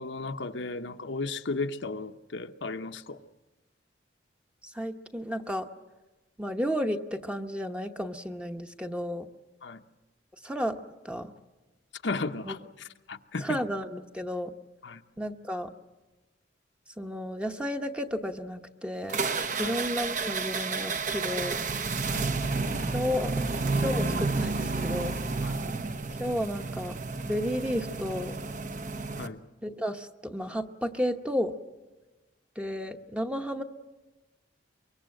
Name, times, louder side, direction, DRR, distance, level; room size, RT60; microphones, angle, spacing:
voice 1, 0.0-3.2 9.6-9.8 12.0-13.6 14.8-15.0 19.6-19.8 22.0-22.3 25.4-25.6 29.2-29.4, left 3 dB, 80° left, 0.9 m, -35 dB
voice 2, 4.7-5.7 6.4-9.3 10.4-10.8 11.0-11.3 12.4-12.5 13.4-14.5 15.2-15.7 17.0-19.2 19.6-21.6 22.9-23.4 23.8-25.2 26.2-27.0 27.2-28.3 29.6-31.5 32.6-33.6, equal, 5° right, 0.9 m, -32 dB
sound 1, 19.1-29.3, right 3 dB, 45° right, 1.0 m, -31 dB
24.5 x 23.0 x 7.7 m
head